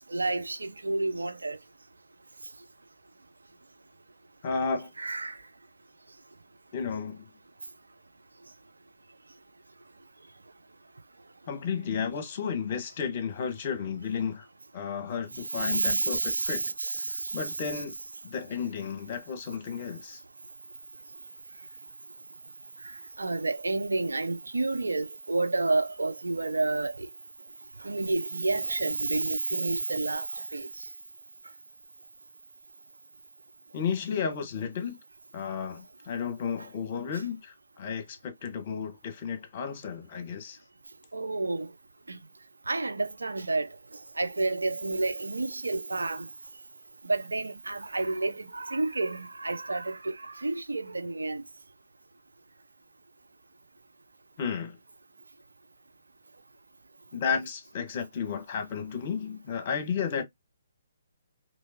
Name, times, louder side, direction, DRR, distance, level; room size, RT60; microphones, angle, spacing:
voice 1, 0.1-1.6 5.0-5.4 15.5-17.4 23.2-27.1 27.8-30.7 41.1-41.7 42.7-43.7 44.2-46.3 47.0-51.4, right 2 dB, 75° right, 0.4 m, -30 dB
voice 2, 4.4-4.9 6.7-7.3 11.5-14.5 14.7-16.6 17.0-18.0 18.2-20.2 33.7-35.0 35.3-40.6 54.4-54.8 57.1-60.2, left 6 dB, 40° left, 1.1 m, -33 dB
3.5 x 3.0 x 2.6 m
figure-of-eight pair, 130°, 0 cm